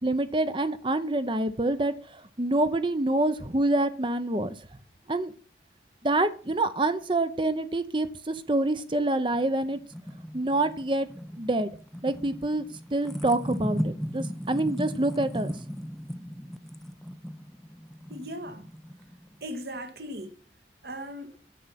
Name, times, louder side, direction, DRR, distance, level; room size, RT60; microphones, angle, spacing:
voice 1, 0.0-4.5 5.1-5.3 6.0-9.8 10.3-11.1 11.4-11.7 12.0-12.6 12.9-15.5, right 2 dB, 30° right, 0.8 m, -26 dB
sound 1, 9.3-19.4, equal, ahead, 0.5 m, -37 dB
voice 2, 18.1-18.7 19.4-20.3 20.8-21.4, equal, 60° right, 1.9 m, -38 dB
10.0 x 7.2 x 5.9 m
head